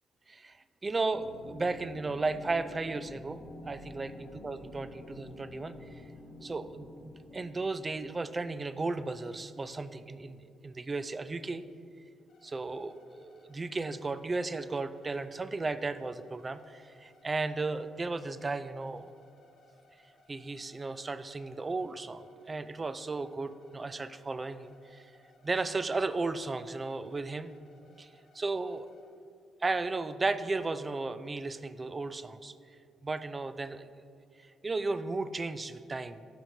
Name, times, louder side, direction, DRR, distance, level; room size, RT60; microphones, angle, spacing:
voice 1, 0.8-5.7 6.4-11.6 12.4-19.1 20.3-25.0 25.4-27.5 28.0-28.1 28.3-28.9 29.6-32.5 33.0-33.9 34.6-36.2, right 3 dB, 25° right, 13 dB, 0.3 m, -35 dB
sound 1, 1.1-9.6, left 1 dB, 45° left, 1.1 m, -49 dB
sound 2, 12.3-29.1, left 2 dB, 60° left, 1.1 m, -64 dB
6.1 x 5.0 x 5.3 m, 2.3 s
cardioid pair, 90°, 0 cm